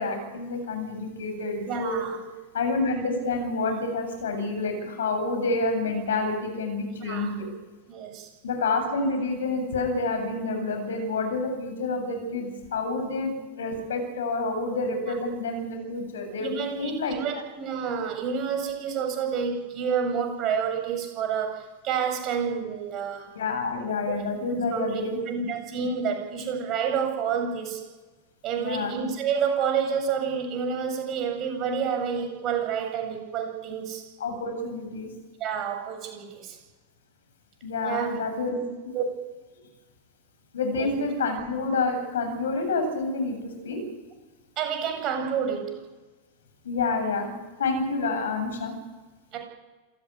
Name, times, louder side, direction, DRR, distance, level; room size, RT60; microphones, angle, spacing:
voice 1, 0.0-2.1 2.5-7.4 8.4-17.4 23.3-25.5 28.5-29.0 34.2-35.1 37.6-38.6 40.5-43.8 46.6-47.3 47.6-48.7, left 3 dB, 70° left, 6 dB, 7.8 m, -28 dB
voice 2, 1.7-2.2 7.0-7.3 7.9-8.3 15.1-15.2 16.4-23.3 24.1-24.2 24.5-27.8 28.4-34.0 35.4-36.6 37.8-38.2 38.9-39.1 40.8-40.9 44.6-45.7 49.3-49.4, right 6 dB, 40° right, 4 dB, 7.9 m, -29 dB
27.0 x 16.0 x 9.9 m, 1.2 s
figure-of-eight pair, 90°, 0 cm